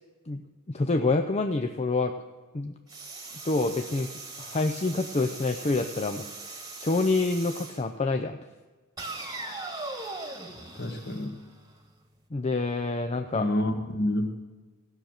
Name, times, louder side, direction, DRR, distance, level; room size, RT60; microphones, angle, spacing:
voice 1, 0.3-2.1 2.5-2.8 3.4-4.1 4.4-8.4 12.3-13.5, left 3 dB, 30° left, 5 dB, 0.5 m, -27 dB
sound 1, 2.9-7.9 9.0-11.9, right 3 dB, 15° right, 1.4 m, -40 dB
voice 2, 10.7-11.4 13.3-14.4, left 1 dB, 50° left, 4 dB, 1.7 m, -28 dB
16.0 x 6.5 x 8.9 m, 1.3 s
head